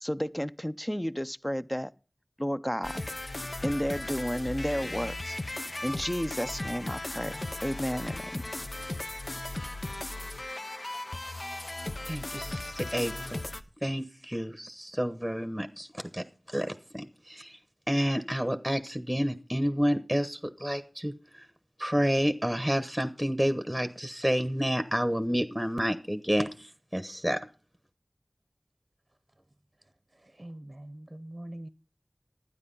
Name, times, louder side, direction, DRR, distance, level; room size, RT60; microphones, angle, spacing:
voice 1, 0.0-1.9 2.4-3.0 3.6-5.4 5.8-8.7, equal, 10° left, 0.6 m, -32 dB
sound 1, 2.8-13.6, left 2 dB, 65° left, 0.8 m, -37 dB
voice 2, 12.1-13.4 13.8-16.2 16.5-17.6 17.9-21.1 21.8-27.5, equal, 5° right, 1.1 m, -29 dB
voice 3, 30.2-31.7, right 1 dB, 40° right, 0.7 m, -43 dB
12.5 x 9.6 x 5.5 m
wide cardioid pair, 45°, 0 cm